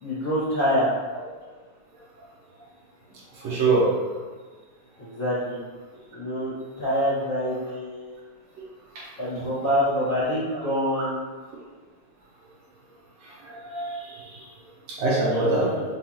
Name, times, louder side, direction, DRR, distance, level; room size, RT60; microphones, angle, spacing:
voice 1, 0.0-0.9 5.0-5.6 6.1-8.2 9.2-11.2 15.3-15.8, equal, 35° left, -12 dB, 1.3 m, -26 dB
voice 2, 3.4-3.9 9.0-9.1 13.5-14.4 15.0-15.6, right 3 dB, 70° right, -6 dB, 1.7 m, -24 dB
5.6 x 3.0 x 2.8 m, 1.4 s
omnidirectional pair, 3.6 m